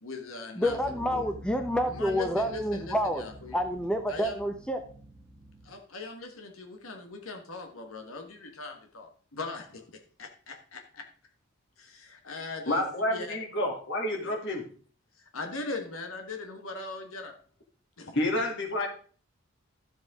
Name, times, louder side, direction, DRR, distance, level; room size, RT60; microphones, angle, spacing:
voice 1, 0.0-1.3 1.9-3.6 4.1-4.3 5.6-11.1 11.8-13.4 15.3-17.3 18.0-18.1, left 3 dB, 80° left, 4 dB, 1.6 m, -40 dB
voice 2, 0.6-3.2 3.5-4.8, equal, 5° left, 6 dB, 0.9 m, -28 dB
sound 1, 0.6-5.7, right 1 dB, 25° right, 1.1 m, -47 dB
voice 3, 12.7-14.6 18.1-18.9, left 1 dB, 60° left, 1 dB, 2.7 m, -29 dB
12.5 x 7.8 x 3.7 m, 0.42 s
head